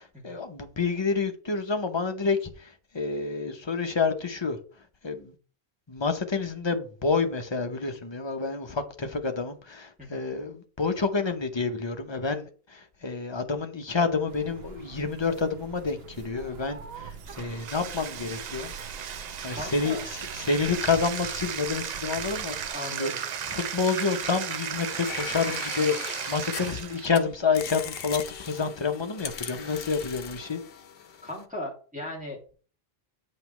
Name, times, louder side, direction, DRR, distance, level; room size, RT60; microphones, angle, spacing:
voice 1, 0.0-4.6 5.0-5.3 5.9-18.7 19.4-23.1 23.4-30.6, left 4 dB, 30° left, 0.8 m, -29 dB
sound 1, 14.3-22.7, right 5 dB, 75° right, 1.0 m, -45 dB
Bathtub (filling or washing), 17.2-27.2, right 8 dB, 55° right, 0.5 m, -35 dB
voice 2, 19.5-20.0 22.7-23.2 31.2-32.5, left 1 dB, 10° right, 2.4 m, -37 dB
sound 2, 25.0-27.2 27.5-31.4, left 8 dB, 70° left, 0.9 m, -39 dB
8.2 x 5.4 x 3.1 m
omnidirectional pair, 1.0 m